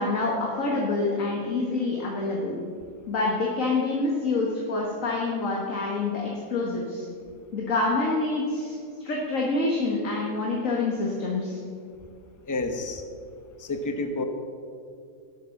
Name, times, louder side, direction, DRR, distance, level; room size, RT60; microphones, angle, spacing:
voice 1, 0.0-2.6 3.1-7.0 7.5-11.6, left 3 dB, 65° left, -2 dB, 2.0 m, -27 dB
voice 2, 12.5-13.0 13.6-14.2, left 2 dB, 15° left, 5 dB, 0.9 m, -29 dB
17.5 x 7.3 x 5.9 m, 2.3 s
omnidirectional pair, 1.5 m